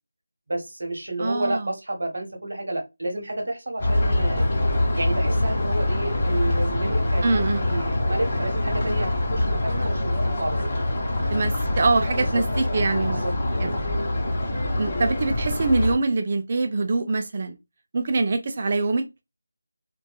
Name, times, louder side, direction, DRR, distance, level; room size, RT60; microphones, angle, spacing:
voice 1, 0.5-4.5 5.0-10.6 12.3-12.4 13.0-13.3, right 1 dB, 60° right, 1.0 m, -30 dB
voice 2, 1.2-1.7 7.2-7.6 11.3-13.2 13.6-13.7 14.8-17.6 17.9-19.1, right 3 dB, 35° right, 0.4 m, -24 dB
sound 1, 3.8-15.9, left 1 dB, 30° left, 1.0 m, -24 dB
2.6 x 2.3 x 2.2 m
figure-of-eight pair, 170°, 0 cm